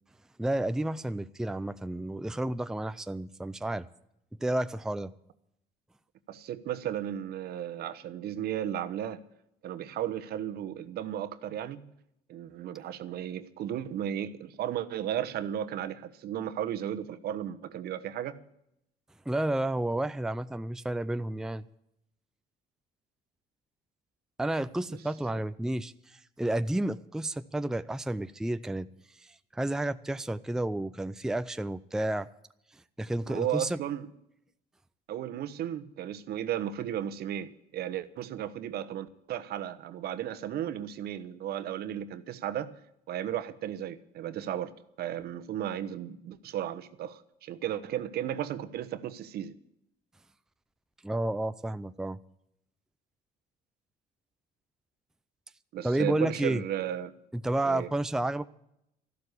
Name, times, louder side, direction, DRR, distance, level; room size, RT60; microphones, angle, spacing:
voice 1, 0.4-3.9 4.4-5.1 19.3-21.7 24.4-28.9 29.2-32.3 33.0-33.8 51.0-52.2 55.8-56.6 57.3-58.5, right 1 dB, 5° right, 0.5 m, -31 dB
voice 2, 6.3-9.2 9.6-11.9 12.3-18.4 33.3-34.1 35.1-42.8 43.1-49.6 55.7-57.1 57.7-57.9, right 10 dB, 70° right, 1.2 m, -34 dB
13.5 x 12.0 x 8.1 m
cardioid pair, 110°, 17 cm